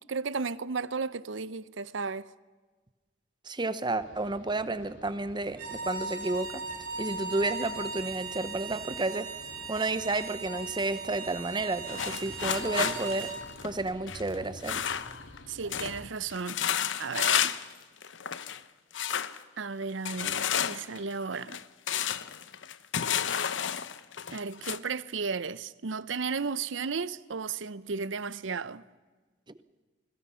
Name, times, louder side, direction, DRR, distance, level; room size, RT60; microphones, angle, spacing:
voice 1, 0.1-2.3 15.5-16.6 17.0-17.6 19.6-21.6 24.3-28.8, right 5 dB, 75° right, 0.7 m, -34 dB
voice 2, 3.5-6.6 7.0-9.3 9.7-13.3 13.6-14.8, right 2 dB, 25° right, 0.9 m, -31 dB
sound 1, 4.0-16.1, left 1 dB, 90° left, 3.3 m, -51 dB
sound 2, 5.5-13.4, right 4 dB, 50° right, 5.5 m, -38 dB
sound 3, 11.9-15.4 15.7-16.0 16.3-17.7 18.0-18.6 18.9-19.4 20.0-24.8, left 9 dB, 70° left, 0.9 m, -31 dB
27.5 x 21.5 x 5.7 m
head